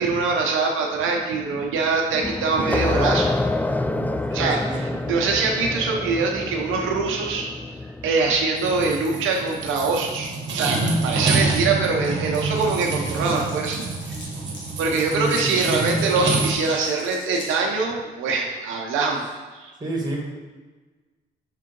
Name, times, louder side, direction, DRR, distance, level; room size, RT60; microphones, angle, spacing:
voice 1, 0.0-3.3 3.9-4.1 4.3-7.5 8.0-14.2 14.8-19.2 19.5-19.7, right 4 dB, 85° right, 0 dB, 0.8 m, -23 dB
sound 1, 2.2-8.6, left 2 dB, 10° left, 0.3 m, -27 dB
voice 2, 4.3-5.1 15.1-15.6 19.8-20.2, right 1 dB, 20° right, -1 dB, 1.8 m, -29 dB
sound 2, 8.6-16.5, right 3 dB, 65° right, 1.2 m, -27 dB
Glass, 12.3-17.6, left 2 dB, 65° left, 1.6 m, -42 dB
5.5 x 3.7 x 5.2 m, 1.3 s
cardioid pair, 90°, 20 cm